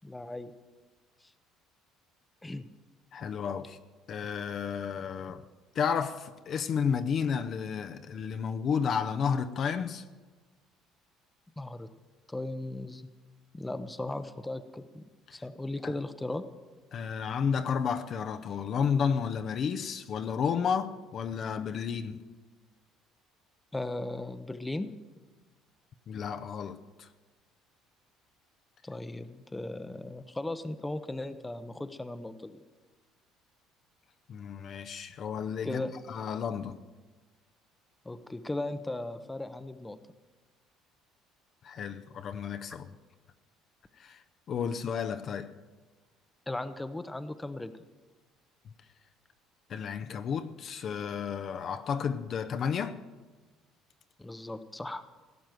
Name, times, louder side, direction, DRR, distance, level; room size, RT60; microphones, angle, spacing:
voice 1, 0.0-0.5 2.4-2.6 11.6-11.9 12.3-13.1 13.5-15.0 15.3-16.4 23.7-24.9 28.8-32.6 35.6-35.9 38.0-40.0 46.5-47.7 54.2-55.0, left 2 dB, 10° left, 0.8 m, -37 dB
voice 2, 3.1-3.8 4.1-5.4 5.7-10.0 15.3-15.4 15.8-15.9 16.9-22.2 26.1-27.1 34.3-35.8 36.1-36.8 41.6-42.9 44.0-44.2 44.5-45.5 49.7-53.0, left 7 dB, 50° left, 0.7 m, -32 dB
16.5 x 6.1 x 9.3 m
cardioid pair, 105°, 0 cm